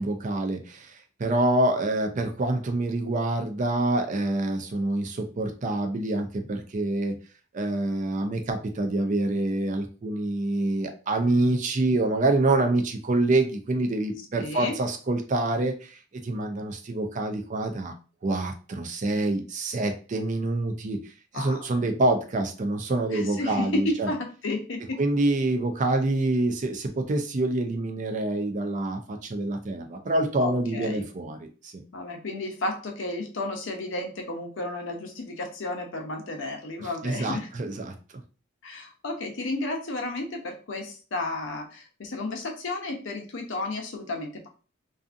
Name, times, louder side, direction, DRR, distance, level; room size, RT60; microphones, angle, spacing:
voice 1, 0.0-7.2 7.5-17.9 18.2-21.0 21.3-24.1 25.0-31.4 31.6-31.8 37.0-37.9, right 2 dB, 40° right, 5 dB, 0.4 m, -26 dB
voice 2, 14.3-14.8 21.3-21.6 23.1-25.0 30.4-31.1 31.9-37.5 38.6-44.5, left 2 dB, 70° left, 2 dB, 0.6 m, -32 dB
2.5 x 2.5 x 2.4 m, 0.36 s
head